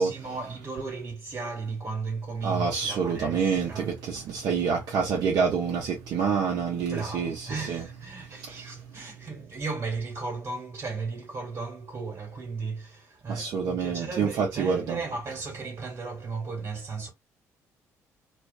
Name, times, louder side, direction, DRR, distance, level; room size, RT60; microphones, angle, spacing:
voice 1, 0.0-3.9 6.9-17.1, right 4 dB, 40° right, 1.2 m, -35 dB
voice 2, 2.4-7.8 8.4-8.9 13.3-15.0, right 6 dB, 55° right, 0.6 m, -27 dB
2.4 x 2.3 x 2.2 m
hypercardioid pair, 50°, 8 cm